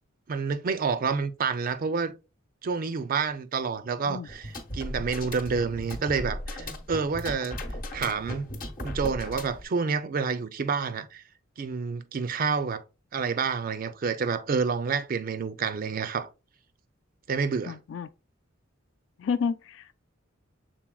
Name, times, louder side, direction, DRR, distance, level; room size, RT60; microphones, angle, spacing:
voice 1, 0.3-2.1 2.6-7.6 7.9-8.5 8.8-11.2 11.6-12.8 13.1-16.3 17.3-17.8, right 5 dB, 45° right, 0.4 m, -28 dB
sound 1, 4.3-9.6, left 1 dB, 45° left, 1.0 m, -36 dB
voice 2, 17.7-18.1 19.2-20.0, left 6 dB, 65° left, 0.3 m, -30 dB
6.0 x 3.8 x 2.3 m
head